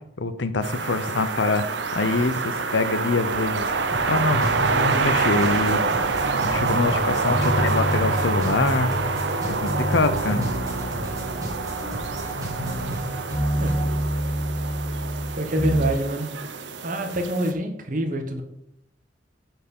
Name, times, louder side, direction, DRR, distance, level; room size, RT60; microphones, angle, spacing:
voice 1, 0.2-1.6 1.9-3.7 4.1-5.9 6.4-8.9 9.5-10.5, left 3 dB, 75° left, 11 dB, 0.8 m, -24 dB
sound 1, 0.6-17.5, right 4 dB, 70° right, 0.7 m, -27 dB
sound 2, 3.6-13.9, right 2 dB, 20° right, 2.4 m, -34 dB
sound 3, 4.3-7.0 7.3-9.4 9.6-13.1 13.3-15.9, equal, 25° left, 1.2 m, -28 dB
voice 2, 13.6-13.9 15.3-16.4 16.8-18.4, right 1 dB, 45° right, 4 dB, 1.2 m, -26 dB
9.5 x 4.6 x 5.5 m, 0.79 s
head